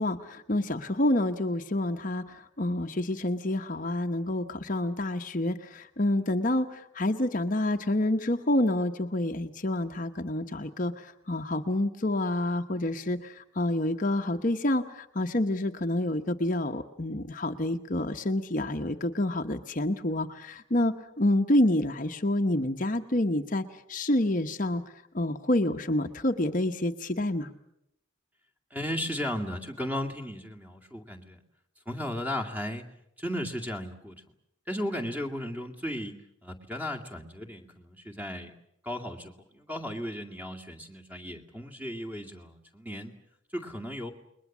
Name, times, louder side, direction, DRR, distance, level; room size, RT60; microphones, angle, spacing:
voice 1, 0.0-23.6 23.9-24.8 25.1-27.5, left 1 dB, 40° left, 5 dB, 1.0 m, -28 dB
voice 2, 28.7-31.4 31.9-32.9 33.2-34.2 34.7-36.2 36.4-38.5 38.8-43.1 43.5-44.1, equal, 10° right, 4 dB, 2.2 m, -35 dB
29.5 x 21.5 x 7.3 m, 0.80 s
head